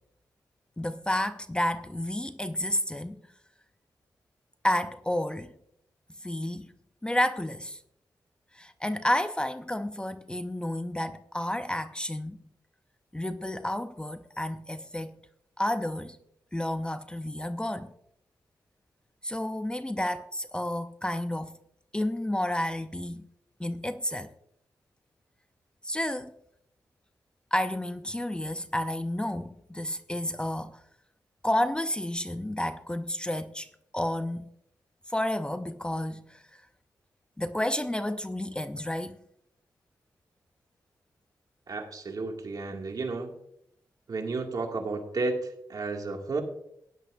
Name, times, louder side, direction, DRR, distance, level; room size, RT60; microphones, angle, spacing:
voice 1, 0.8-3.2 4.6-5.5 6.2-6.7 7.0-7.8 8.5-12.5 13.1-15.2 15.6-16.2 16.5-17.9 19.2-21.6 21.9-23.2 23.6-24.3 25.8-26.3 27.5-30.8 31.4-33.7 33.9-34.5 35.1-36.4 37.4-39.2, left 1 dB, 10° left, 0.6 m, -31 dB
voice 2, 41.7-43.3 44.1-46.4, right 3 dB, 55° right, 2.2 m, -32 dB
16.5 x 10.5 x 2.6 m
cardioid pair, 80°, 8 cm